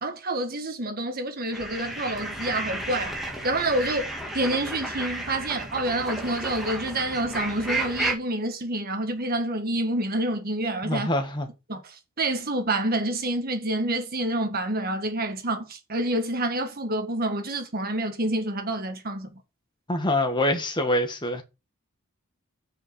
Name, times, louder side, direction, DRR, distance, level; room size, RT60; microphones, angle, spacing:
voice 1, 0.0-3.1 3.4-11.1 11.7-19.3, right 1 dB, 45° right, 1.7 m, -28 dB
sound 1, 1.5-8.1, right 1 dB, ahead, 1.9 m, -32 dB
voice 2, 10.8-11.5 19.9-21.4, left 1 dB, 20° left, 1.5 m, -25 dB
6.5 x 5.1 x 5.9 m
head